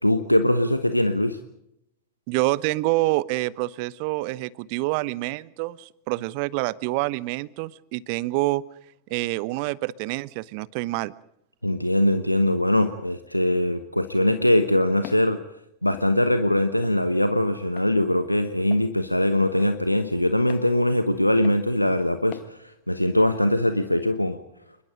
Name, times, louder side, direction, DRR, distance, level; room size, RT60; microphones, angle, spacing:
voice 1, 0.0-1.4 11.6-15.4 15.8-24.4, left 1 dB, 90° left, 9 dB, 1.2 m, -22 dB
voice 2, 2.3-8.6 9.1-11.1, right 19 dB, 45° right, 20 dB, 0.9 m, -27 dB
Walk footsteps, 15.0-15.3 15.9-16.1 16.8-17.0 17.8-17.9 18.7-18.9 19.6-19.8 20.5-20.7 21.4-21.6 22.3-22.5, left 15 dB, 40° left, 1.3 m, -42 dB
29.0 x 21.5 x 5.2 m, 0.78 s
figure-of-eight pair, 90°, 0 cm